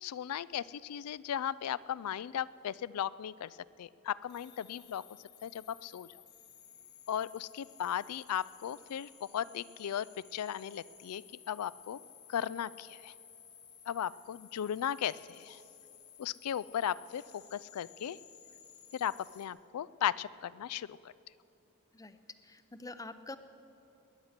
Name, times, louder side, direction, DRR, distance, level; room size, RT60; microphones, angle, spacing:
voice 1, 0.0-3.5 3.8-5.0 5.4-6.1 7.1-10.1 10.3-11.2 11.5-12.0 12.3-13.1 13.9-15.6 16.2-18.2 18.9-20.9, left 9 dB, 85° left, 20 dB, 0.4 m, -36 dB
sound 1, 4.2-19.5, left 9 dB, 50° left, 1.5 m, -57 dB
voice 2, 22.4-23.4, left 2 dB, 15° left, 11 dB, 0.5 m, -46 dB
20.5 x 9.9 x 6.6 m, 2.9 s
head